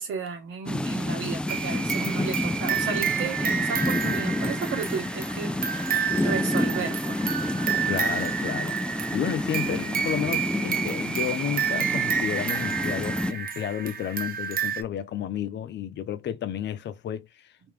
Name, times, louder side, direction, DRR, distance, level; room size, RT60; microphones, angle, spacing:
voice 1, 0.0-5.5 6.2-7.2, right 5 dB, 80° right, 1.3 m, -33 dB
sound 1, 0.7-13.3, left 1 dB, 5° left, 0.3 m, -29 dB
sound 2, 1.5-14.8, right 7 dB, 45° right, 0.7 m, -30 dB
voice 2, 7.9-17.5, left 9 dB, 65° left, 0.7 m, -32 dB
3.5 x 2.8 x 3.2 m
cardioid pair, 90°, 20 cm